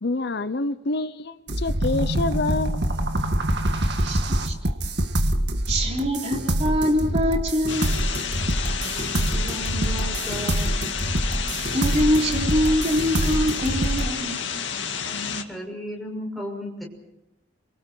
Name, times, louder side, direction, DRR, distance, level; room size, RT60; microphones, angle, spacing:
voice 1, 0.0-2.9, left 2 dB, 60° left, 12 dB, 0.8 m, -27 dB
sound 1, 1.5-14.0, right 1 dB, 60° right, 1.9 m, -25 dB
voice 2, 4.0-4.6 5.7-8.0 11.7-14.4, equal, 35° right, 1 dB, 3.6 m, -24 dB
sound 2, 7.7-15.4, left 7 dB, 75° left, 2.1 m, -30 dB
voice 3, 8.8-10.8 15.0-16.8, equal, ahead, 0 dB, 6.2 m, -35 dB
29.0 x 24.0 x 4.5 m, 0.90 s
head